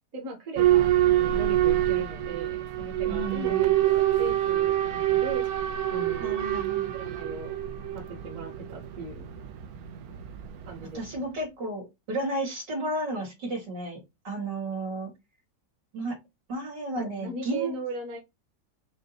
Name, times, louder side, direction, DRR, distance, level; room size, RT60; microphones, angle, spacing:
voice 1, 0.1-6.4 6.9-7.5 7.9-9.3 10.6-11.3 17.0-18.2, right 3 dB, 50° right, 1.5 m, -38 dB
Boat Water vehicle / Alarm, 0.6-11.2, right 13 dB, 70° right, 1.0 m, -26 dB
voice 2, 3.1-3.6 6.2-6.9 10.9-15.1 15.9-16.2 16.5-17.7, right 2 dB, 85° right, 2.9 m, -33 dB
6.2 x 2.2 x 2.8 m
omnidirectional pair, 1.9 m